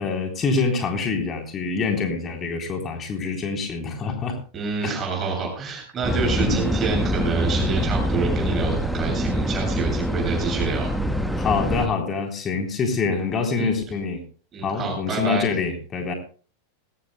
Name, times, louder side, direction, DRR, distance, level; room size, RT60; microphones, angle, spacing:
voice 1, 0.0-4.4 4.8-4.9 5.3-5.4 6.1-6.8 11.4-14.2 14.6-16.1, left 4 dB, 25° left, 4 dB, 3.7 m, -26 dB
voice 2, 4.5-10.9 13.6-13.7 14.5-15.4, right 5 dB, 25° right, 0 dB, 7.5 m, -27 dB
sound 1, 6.0-11.9, equal, ahead, 1.4 m, -24 dB
21.5 x 17.0 x 2.2 m, 0.39 s
figure-of-eight pair, 90°, 0 cm